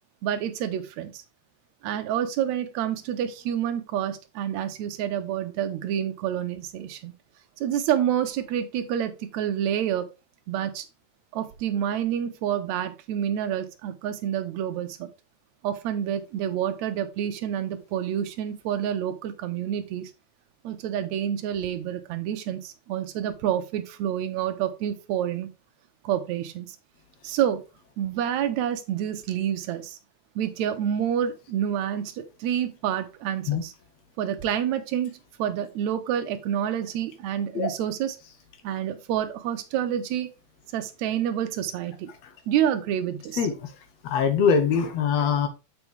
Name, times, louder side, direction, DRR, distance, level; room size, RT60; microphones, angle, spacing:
voice 1, 0.2-1.2 1.8-7.1 7.6-10.1 10.5-10.9 11.3-15.1 15.6-20.1 20.6-25.5 26.0-26.7 27.2-27.6 28.0-30.0 30.4-33.7 34.2-38.2 38.6-40.3 40.7-42.1 42.5-43.4, right 10 dB, 75° right, 7 dB, 2.1 m, -28 dB
voice 2, 44.0-45.5, left 6 dB, 65° left, 8 dB, 2.1 m, -22 dB
7.1 x 5.9 x 3.3 m, 0.28 s
omnidirectional pair, 3.4 m